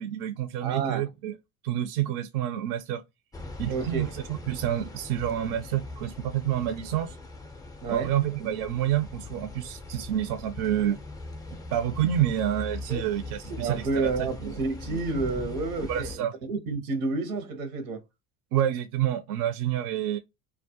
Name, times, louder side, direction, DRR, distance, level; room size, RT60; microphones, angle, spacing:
voice 1, 0.0-1.3 1.6-3.0 3.6-7.2 7.9-11.0 11.7-14.6 15.9-16.3 18.5-20.2, right 11 dB, 60° right, 0.5 m, -28 dB
voice 2, 0.6-1.0 3.7-4.1 7.8-8.1 12.9-13.0 13.6-18.0, right 3 dB, 85° right, 0.8 m, -30 dB
sound 1, 3.3-16.2, left 3 dB, 10° left, 0.3 m, -41 dB
2.3 x 2.0 x 2.6 m
hypercardioid pair, 65°, 42 cm